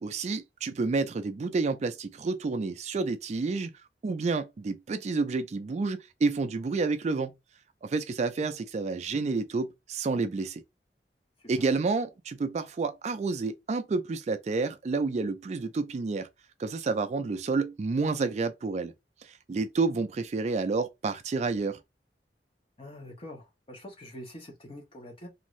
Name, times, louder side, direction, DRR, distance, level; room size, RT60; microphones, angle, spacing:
voice 1, 0.0-3.7 4.0-7.3 7.8-10.6 11.5-16.3 16.6-18.9 19.2-21.8, right 4 dB, 40° right, 0.3 m, -29 dB
voice 2, 22.8-25.3, left 1 dB, 30° left, 1.0 m, -45 dB
2.6 x 2.5 x 3.1 m
head